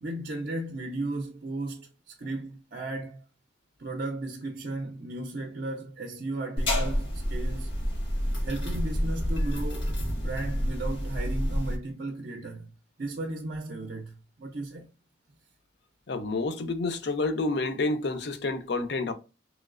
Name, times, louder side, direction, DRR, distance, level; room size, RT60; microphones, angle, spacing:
voice 1, 0.0-3.2 3.8-7.8 8.4-12.7 13.0-14.9, right 2 dB, 50° right, 0.4 m, -35 dB
sound 1, 6.6-11.8, equal, 80° left, 1.2 m, -29 dB
voice 2, 16.1-19.1, left 3 dB, 60° left, 0.5 m, -29 dB
3.1 x 3.0 x 2.4 m
head